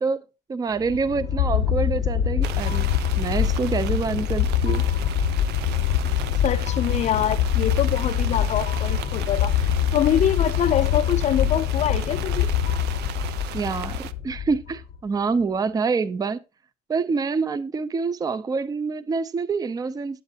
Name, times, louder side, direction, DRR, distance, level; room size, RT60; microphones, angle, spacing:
voice 1, 0.0-2.9 3.2-4.9 13.5-16.4 16.9-20.2, right 4 dB, 20° right, 0.5 m, -26 dB
sound 1, 0.8-15.0, left 9 dB, 75° left, 0.8 m, -24 dB
sound 2, 2.4-14.1, right 11 dB, 75° right, 0.6 m, -38 dB
voice 2, 6.4-12.5, left 10 dB, 45° left, 0.5 m, -25 dB
8.4 x 8.0 x 2.8 m
cardioid pair, 110°, 17 cm